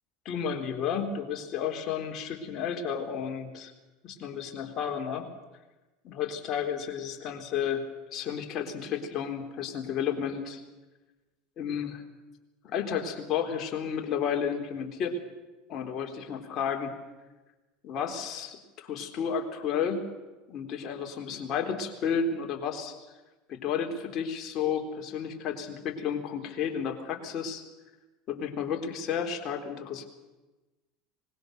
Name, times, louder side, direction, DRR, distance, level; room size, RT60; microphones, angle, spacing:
voice 1, 0.2-3.7 4.0-5.3 6.0-10.6 11.6-12.0 12.6-15.2 15.7-16.9 17.8-20.0 20.5-23.0 23.5-27.6 28.3-30.0, left 7 dB, 50° left, 3 dB, 4.0 m, -32 dB
25.0 x 21.0 x 6.8 m, 1.2 s
hypercardioid pair, 90°, 0 cm